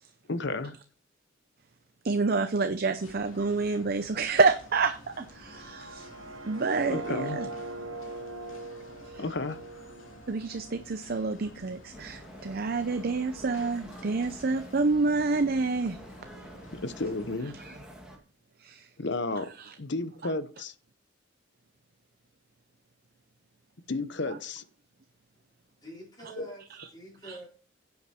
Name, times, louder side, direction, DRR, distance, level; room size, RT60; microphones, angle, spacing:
voice 1, 0.3-0.7 6.9-7.4 9.1-9.6 16.8-17.6 19.0-19.5 19.8-20.7 23.9-24.6 26.4-26.5, left 2 dB, 60° left, 0.9 m, -32 dB
voice 2, 2.0-6.1 6.4-7.5 9.0-9.2 10.3-16.0 17.5-17.8 18.6-18.9 19.6-19.7 24.3-24.4 26.8-26.9 27.2-27.4, right 4 dB, 50° right, 0.6 m, -28 dB
sound 1, 3.0-17.3, left 1 dB, 85° left, 2.7 m, -51 dB
sound 2, 5.3-11.3, right 2 dB, 80° right, 1.3 m, -41 dB
sound 3, 11.9-18.2, equal, 5° right, 2.2 m, -47 dB
voice 3, 25.8-27.5, right 1 dB, 20° left, 4.5 m, -46 dB
9.9 x 7.8 x 4.4 m
head